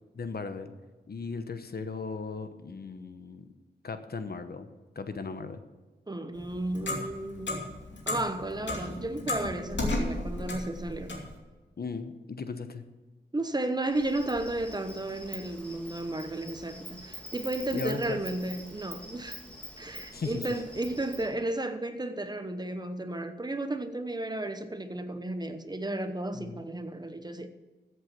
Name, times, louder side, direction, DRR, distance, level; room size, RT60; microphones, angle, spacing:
voice 1, 0.1-0.7 1.1-3.5 3.8-4.7 4.9-5.6 11.8-12.8 17.7-18.2 20.1-20.5 26.3-26.6, left 4 dB, 60° left, 1.0 m, -37 dB
voice 2, 6.1-7.7 8.1-11.2 13.3-19.4 19.8-27.5, right 2 dB, 20° right, 0.9 m, -33 dB
Clock, 6.3-11.3, left 2 dB, 80° left, 2.7 m, -34 dB
Insect, 13.9-21.3, equal, 5° left, 2.7 m, -45 dB
14.0 x 8.0 x 6.0 m
wide cardioid pair, 125°, 18 cm